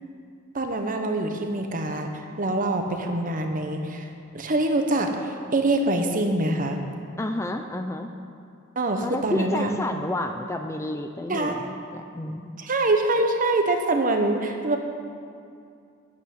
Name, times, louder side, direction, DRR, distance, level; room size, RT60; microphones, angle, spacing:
voice 1, 0.5-6.8 8.7-9.7 11.3-11.7 12.6-14.8, right 2 dB, 40° right, 4 dB, 1.0 m, -25 dB
voice 2, 7.2-8.1 9.0-12.6, left 1 dB, 15° left, 6 dB, 0.4 m, -30 dB
8.9 x 8.4 x 9.0 m, 2.4 s
head